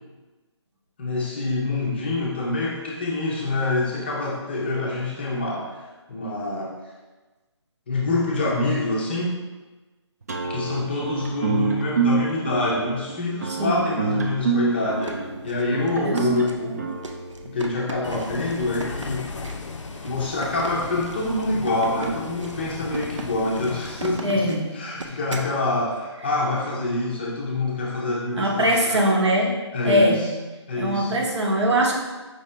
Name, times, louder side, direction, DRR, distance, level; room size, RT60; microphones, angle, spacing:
voice 1, 1.0-5.8 6.1-6.7 7.9-9.3 10.5-16.9 17.4-19.3 20.0-29.1 29.7-30.3 30.7-31.2, left 2 dB, 20° left, -4 dB, 0.5 m, -26 dB
sound 1, 10.3-17.7, right 5 dB, 35° right, 0.4 m, -26 dB
voice 2, 13.5-13.9 16.0-16.4 24.2-24.7 28.4-29.6 29.8-30.3 30.8-31.9, equal, 70° right, -1 dB, 1.0 m, -21 dB
sound 2, 14.8-25.6, right 3 dB, 90° right, 0.6 m, -37 dB
Bus, 18.0-24.2, left 4 dB, 85° left, 0.4 m, -36 dB
5.2 x 2.7 x 3.2 m, 1.2 s
figure-of-eight pair, 160°, 15 cm